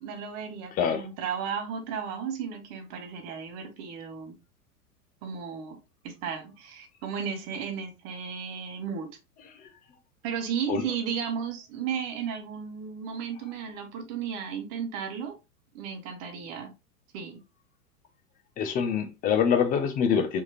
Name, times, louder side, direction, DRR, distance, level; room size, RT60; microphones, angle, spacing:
voice 1, 0.0-4.4 5.2-5.8 6.0-9.1 10.2-15.4 15.7-16.7 17.1-17.4, right 7 dB, 35° right, 1.3 m, -34 dB
voice 2, 0.8-1.1 9.6-9.7 10.7-10.8 18.6-20.4, left 7 dB, 20° left, 0.7 m, -25 dB
4.6 x 3.6 x 2.8 m
figure-of-eight pair, 100°, 45 cm